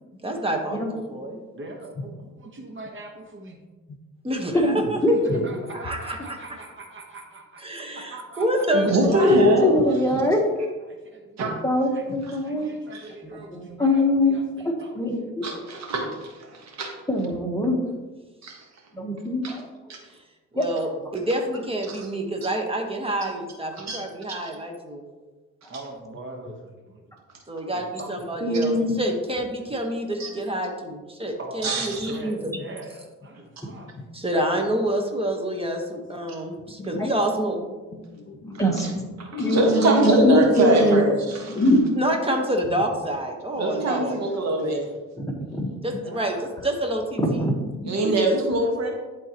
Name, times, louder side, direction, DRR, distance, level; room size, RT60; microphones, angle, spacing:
voice 1, 0.2-1.4 4.2-5.0 5.7-6.6 7.6-9.4 20.5-25.0 27.5-32.5 34.1-37.6 42.0-44.2 45.8-46.4 46.6-47.5 48.0-48.2, right 1 dB, 20° right, 2 dB, 1.3 m, -28 dB
voice 2, 1.6-3.6 5.1-8.4 10.9-11.4 11.9-12.0 12.4-14.0 14.3-15.1 25.7-26.5 27.7-28.1 31.4-31.7 32.1-32.9 33.2-33.9 46.0-46.4, right 2 dB, 40° right, 2 dB, 1.2 m, -41 dB
voice 3, 4.5-5.4 8.7-8.8 9.2-10.4 11.6-12.7 13.3-15.4 17.1-17.8 18.9-19.7 20.5-20.6 28.4-29.0 37.0-37.1 38.6-38.9 39.4-41.0 45.2-45.3 47.2-47.5, left 1 dB, 10° left, 0 dB, 1.3 m, -22 dB
voice 4, 8.9-9.9 11.4-11.6 12.9-13.1 15.4-16.9 18.4-18.6 19.4-19.6 19.9-20.0 21.9-22.0 23.9-24.0 24.3-24.5 30.2-30.3 31.6-32.2 38.7-38.9 39.3-41.5 43.6-44.9 47.8-48.9, right 2 dB, 60° right, 0 dB, 1.6 m, -23 dB
voice 5, 33.7-34.0 36.7-37.1 37.9-39.6 40.8-41.9 45.6-45.7 47.5-47.9, left 1 dB, 40° left, 5 dB, 1.0 m, -29 dB
11.0 x 3.8 x 3.0 m, 1.2 s
cardioid pair, 90°, 30 cm